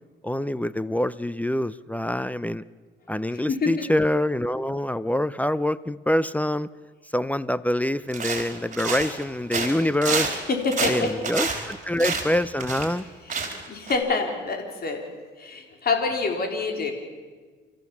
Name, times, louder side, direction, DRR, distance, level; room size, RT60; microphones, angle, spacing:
voice 1, 0.2-2.6 3.1-6.7 7.1-10.4 10.8-13.0, left 1 dB, 5° left, 17 dB, 0.6 m, -25 dB
sound 1, 8.1-9.2 9.5-13.0 13.3-13.6 13.9-14.0, right 4 dB, 40° right, 4.3 m, -28 dB
voice 2, 10.5-11.1 13.3-15.0 15.4-16.9, left 4 dB, 50° left, 3 dB, 4.2 m, -26 dB
29.5 x 14.5 x 7.2 m, 1.5 s
cardioid pair, 90°, 20 cm